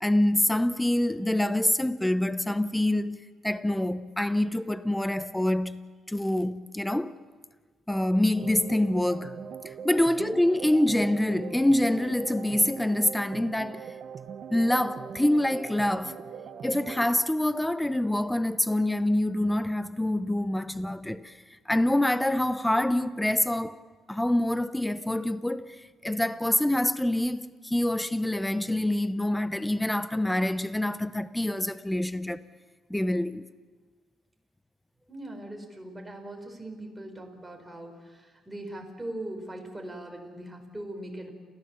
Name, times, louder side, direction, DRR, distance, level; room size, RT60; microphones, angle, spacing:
voice 1, 0.0-5.8 6.1-7.1 7.9-13.9 14.5-16.2 16.6-21.4 21.7-32.4 32.9-33.5, left 1 dB, 5° left, 0.7 m, -26 dB
sound 1, 8.4-17.1, right 7 dB, 55° right, 1.1 m, -41 dB
voice 2, 35.1-41.3, right 1 dB, 10° right, 4.7 m, -40 dB
29.0 x 15.5 x 7.3 m
cardioid pair, 90°, 0 cm